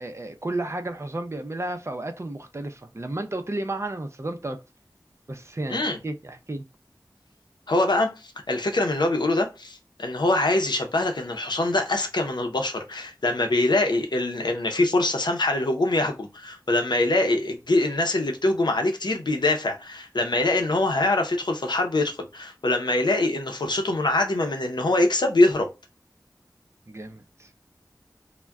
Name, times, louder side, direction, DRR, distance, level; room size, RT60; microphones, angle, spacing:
voice 1, 0.0-4.6 5.3-6.6 26.9-27.5, right 2 dB, 40° right, 0.5 m, -32 dB
voice 2, 7.7-25.7, left 2 dB, 90° left, 0.6 m, -24 dB
2.2 x 2.1 x 3.5 m
wide cardioid pair, 50°, 7 cm